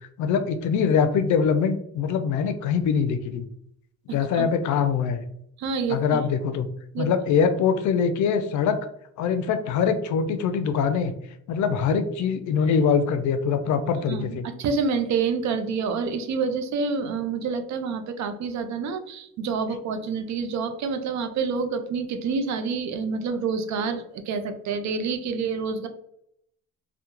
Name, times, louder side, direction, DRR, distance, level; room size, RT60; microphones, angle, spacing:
voice 1, 0.2-3.5 4.1-5.2 5.9-6.7 7.0-8.8 9.2-11.1 11.5-14.5, left 6 dB, 70° left, 9 dB, 0.4 m, -23 dB
voice 2, 4.1-4.5 5.6-6.2 6.9-7.1 14.1-25.9, right 5 dB, 65° right, 8 dB, 0.5 m, -28 dB
2.2 x 2.2 x 2.9 m, 0.72 s
cardioid pair, 90°, 30 cm